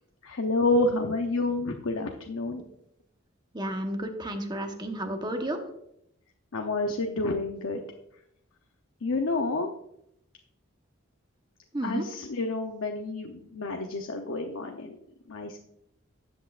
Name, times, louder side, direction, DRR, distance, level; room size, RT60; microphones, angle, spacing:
voice 1, 0.2-2.6 6.5-7.8 9.0-9.7 11.8-15.0 15.3-15.6, left 2 dB, 75° left, 3 dB, 0.8 m, -29 dB
voice 2, 3.5-5.6 11.7-12.1, right 1 dB, 20° right, 4 dB, 1.1 m, -32 dB
13.0 x 8.3 x 2.5 m, 0.75 s
head